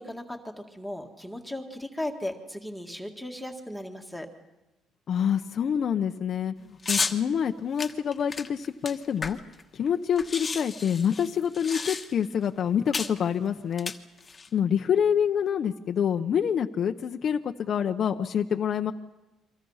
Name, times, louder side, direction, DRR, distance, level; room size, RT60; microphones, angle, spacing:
voice 1, 0.0-4.3, left 1 dB, ahead, 2 dB, 1.9 m, -36 dB
voice 2, 5.1-9.4 9.7-13.9 14.5-18.9, left 8 dB, 50° left, 5 dB, 0.8 m, -26 dB
sound 1, 6.8-7.2 7.8-9.6 9.9-10.0 10.2-12.3 12.9-13.2 13.7-14.5, left 4 dB, 25° left, 1.3 m, -32 dB
29.5 x 24.0 x 5.7 m, 1.0 s
cardioid pair, 125°, 0 cm